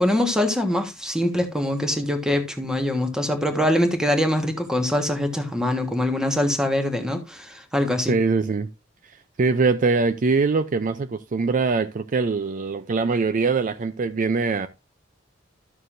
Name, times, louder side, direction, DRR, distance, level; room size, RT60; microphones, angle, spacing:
voice 1, 0.0-8.2, left 1 dB, 5° right, 1.4 m, -23 dB
voice 2, 8.1-8.7 9.0-14.7, right 4 dB, 40° right, 0.4 m, -23 dB
12.5 x 6.7 x 2.6 m
head